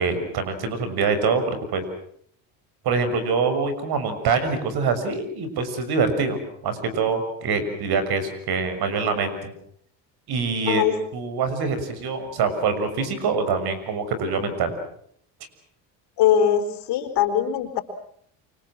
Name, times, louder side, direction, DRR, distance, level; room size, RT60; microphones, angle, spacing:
voice 1, 0.0-1.8 2.8-9.5 10.3-10.8 11.1-14.7, right 4 dB, 60° right, 10 dB, 6.6 m, -24 dB
voice 2, 16.2-17.8, left 9 dB, 65° left, 8 dB, 4.4 m, -21 dB
29.0 x 25.0 x 6.2 m, 0.65 s
supercardioid pair, 95°, 42 cm